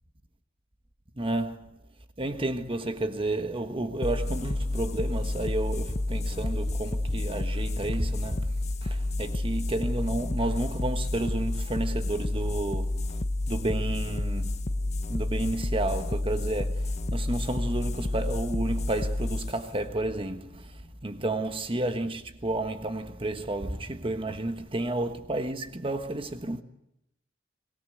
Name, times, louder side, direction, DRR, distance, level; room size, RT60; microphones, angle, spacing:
voice 1, 1.2-1.7 2.2-8.5 8.8-13.2 13.5-14.6 15.1-26.6, right 2 dB, 30° right, 1.3 m, -31 dB
sound 1, 4.0-21.1, left 2 dB, 35° left, 0.8 m, -30 dB
25.0 x 18.5 x 7.9 m
head